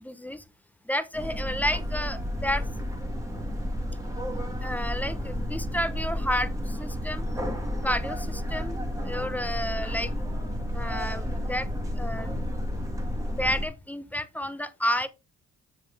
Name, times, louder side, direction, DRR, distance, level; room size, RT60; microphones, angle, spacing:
voice 1, 0.0-0.4 0.9-2.6 4.6-6.5 6.8-7.2 7.8-8.8 9.1-10.1 10.7-11.7 12.0-12.3 13.4-15.1, left 1 dB, 5° left, 0.9 m, -30 dB
sound 1, 1.1-13.7, equal, 10° right, 1.8 m, -31 dB
7.5 x 6.8 x 3.4 m
cardioid pair, 90°, 30 cm